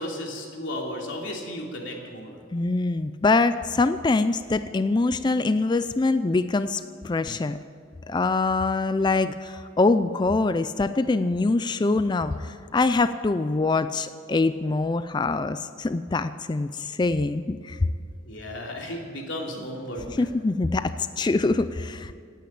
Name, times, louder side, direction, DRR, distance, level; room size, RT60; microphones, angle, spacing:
voice 1, 0.0-2.4 18.2-20.3, left 1 dB, 70° left, 0 dB, 3.0 m, -34 dB
voice 2, 2.5-7.6 8.1-17.8 20.2-22.1, left 3 dB, 20° left, 12 dB, 0.4 m, -24 dB
17.5 x 9.2 x 8.7 m, 2.3 s
head